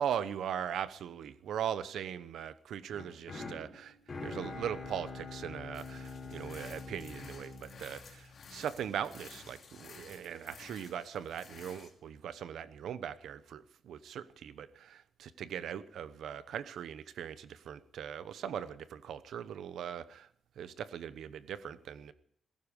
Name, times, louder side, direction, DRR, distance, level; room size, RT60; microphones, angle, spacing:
voice 1, 0.0-4.0 4.2-20.3 20.6-22.1, right 9 dB, 90° right, 0.9 m, -40 dB
sound 1, 2.9-9.0, left 3 dB, 25° left, 4.3 m, -45 dB
sound 2, 5.7-11.9, left 5 dB, 50° left, 3.0 m, -54 dB
17.0 x 15.0 x 5.3 m
wide cardioid pair, 165°, 0 cm